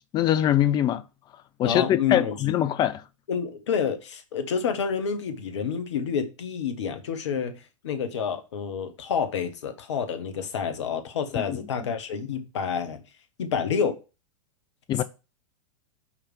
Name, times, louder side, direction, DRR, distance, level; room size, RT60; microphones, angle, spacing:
voice 1, 0.1-1.0 1.6-3.0 11.3-11.6 14.9-15.0, left 11 dB, 25° left, 0.6 m, -23 dB
voice 2, 1.6-2.4 3.3-13.0 13.4-14.0 15.0-15.1, left 7 dB, 60° left, 1.4 m, -28 dB
5.9 x 4.9 x 6.3 m
figure-of-eight pair, 100°, 16 cm